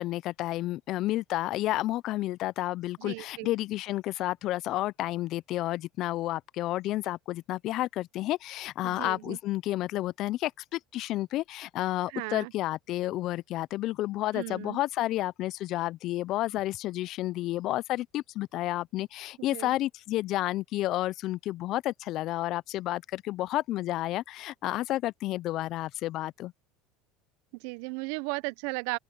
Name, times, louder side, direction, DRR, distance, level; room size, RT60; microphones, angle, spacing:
voice 1, 0.0-26.5, left 15 dB, 55° left, 0.6 m, -31 dB
voice 2, 3.0-3.5 8.8-9.4 12.1-12.5 14.3-14.8 19.5-19.7 27.6-29.0, right 27 dB, 70° right, 0.6 m, -35 dB
open air
hypercardioid pair, 85°, 0 cm